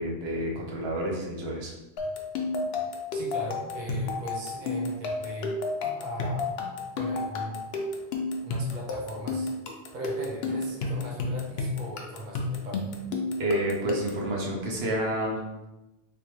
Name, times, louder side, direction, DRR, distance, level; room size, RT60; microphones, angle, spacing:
voice 1, 0.0-1.7 13.4-15.4, right 1 dB, 85° right, -2 dB, 1.0 m, -29 dB
sound 1, 2.0-14.3, left 3 dB, 80° left, 0.8 m, -32 dB
voice 2, 3.1-5.6 6.0-6.5 6.9-7.7 8.4-9.5 9.9-12.9, right 1 dB, 50° right, -3 dB, 0.9 m, -38 dB
3.5 x 2.9 x 3.0 m, 1.0 s
omnidirectional pair, 1.0 m